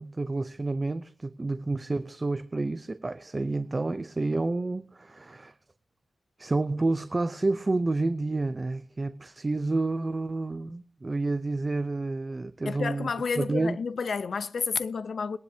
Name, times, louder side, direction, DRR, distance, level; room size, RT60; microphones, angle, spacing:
voice 1, 0.0-5.6 6.4-13.1 13.4-13.8, right 2 dB, 25° right, 0.5 m, -29 dB
voice 2, 12.7-15.4, left 5 dB, 60° left, 0.6 m, -30 dB
21.5 x 10.5 x 2.7 m
wide cardioid pair, 120°, 0 cm